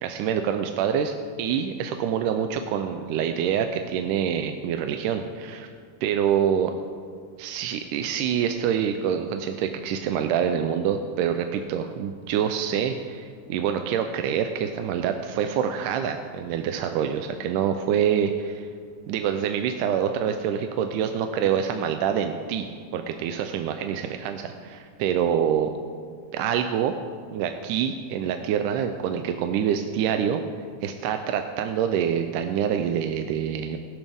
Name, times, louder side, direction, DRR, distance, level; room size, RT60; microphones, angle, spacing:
voice 1, 0.0-5.7 6.0-6.7 7.4-18.7 19.1-25.7 26.3-26.9 27.3-30.4 30.8-33.8, right 8 dB, 85° right, 6 dB, 2.1 m, -26 dB
21.5 x 7.2 x 3.5 m, 2.2 s
omnidirectional pair, 3.7 m